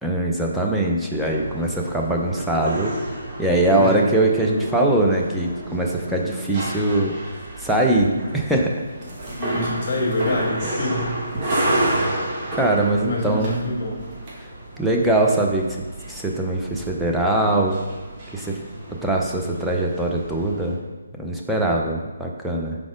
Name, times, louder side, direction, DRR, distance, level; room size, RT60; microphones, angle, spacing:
voice 1, 0.0-2.9 3.4-7.1 7.6-8.7 12.5-13.6 14.4-14.5 14.8-15.8 16.1-17.8 18.3-18.6 19.0-20.8 21.2-22.8, right 1 dB, ahead, -2 dB, 0.6 m, -22 dB
sound 1, 1.2-20.7, right 1 dB, 25° right, 1.3 m, -31 dB
voice 2, 3.7-4.1 9.3-11.1 13.1-14.0, left 1 dB, 40° left, -2 dB, 1.8 m, -26 dB
4.7 x 4.1 x 5.0 m, 1.2 s
hypercardioid pair, 155°, 0 cm